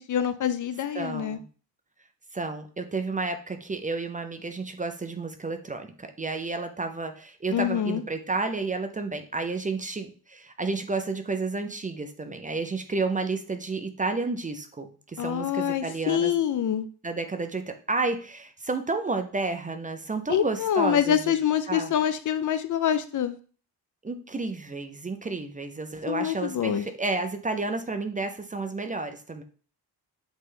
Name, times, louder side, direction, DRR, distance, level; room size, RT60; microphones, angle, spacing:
voice 1, 0.0-1.4 7.5-8.0 15.2-16.9 20.3-23.4 26.1-26.8, left 9 dB, 50° left, 11 dB, 0.5 m, -26 dB
voice 2, 0.9-1.4 2.3-16.3 17.0-21.3 21.7-21.9 24.0-29.4, right 3 dB, 20° right, 6 dB, 0.5 m, -31 dB
8.0 x 3.2 x 3.7 m, 0.40 s
wide cardioid pair, 140°, 39 cm